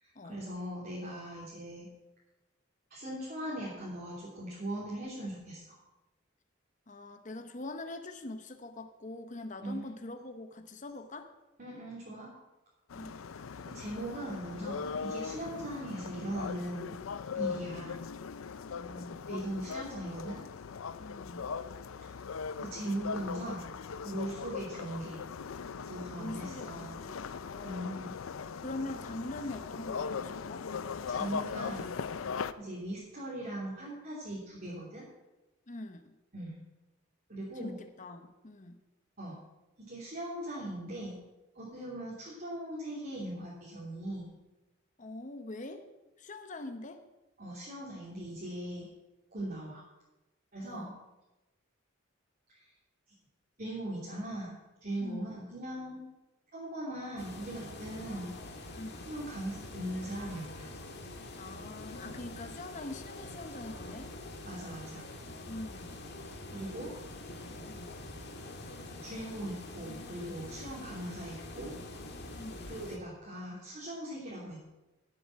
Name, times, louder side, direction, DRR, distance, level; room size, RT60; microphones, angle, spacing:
voice 1, 0.0-1.9 2.9-5.7 9.6-9.9 11.6-12.3 13.7-17.0 17.3-18.0 19.3-20.4 22.0-22.1 22.6-23.6 24.0-25.2 25.9-27.0 27.6-28.2 31.1-31.9 32.6-35.1 36.3-36.6 37.3-37.8 39.2-39.4 39.8-41.2 41.5-44.3 47.4-48.9 49.3-49.8 50.5-50.9 52.5-52.7 53.6-56.0 56.5-58.3 59.1-60.7 64.4-65.1 66.5-66.9 69.0-71.8 72.7-74.6, right 1 dB, 45° right, -7 dB, 3.0 m, -40 dB
voice 2, 6.9-11.3 12.9-13.2 18.8-19.3 21.0-21.5 26.1-27.9 28.6-30.7 35.7-36.1 37.6-38.8 45.0-45.8 46.2-47.0 50.6-50.9 55.0-55.3 58.7-59.1 61.4-64.1 65.5-65.9 67.3-67.9 72.4-72.7, left 2 dB, 35° left, 7 dB, 0.9 m, -43 dB
sound 1, 12.9-32.5, left 5 dB, 80° left, 0.5 m, -39 dB
sound 2, 57.2-73.0, left 2 dB, 55° left, 1.8 m, -45 dB
11.0 x 7.8 x 7.6 m, 1.0 s
head